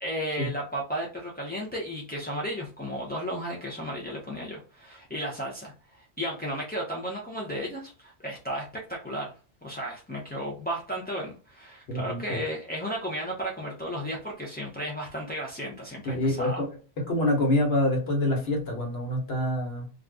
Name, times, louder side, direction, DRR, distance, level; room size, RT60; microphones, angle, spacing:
voice 1, 0.0-9.3 9.6-16.6, equal, 15° left, -5 dB, 0.3 m, -34 dB
voice 2, 11.9-12.2 16.0-16.7 17.0-19.9, left 1 dB, 65° left, 0 dB, 1.2 m, -26 dB
2.5 x 2.4 x 3.4 m, 0.36 s
omnidirectional pair, 1.1 m